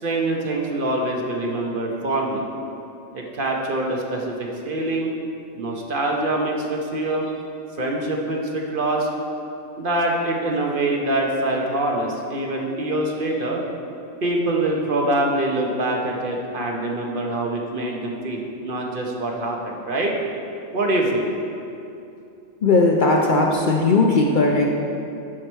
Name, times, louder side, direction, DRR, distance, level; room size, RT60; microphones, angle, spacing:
voice 1, 0.0-2.4 3.1-5.1 5.5-7.3 7.8-9.1 9.8-13.6 14.2-20.1 20.7-21.3, right 1 dB, 50° right, 0 dB, 1.1 m, -24 dB
voice 2, 22.6-24.7, left 3 dB, 50° left, 0 dB, 0.7 m, -17 dB
12.0 x 4.8 x 4.5 m, 2.7 s
omnidirectional pair, 1.2 m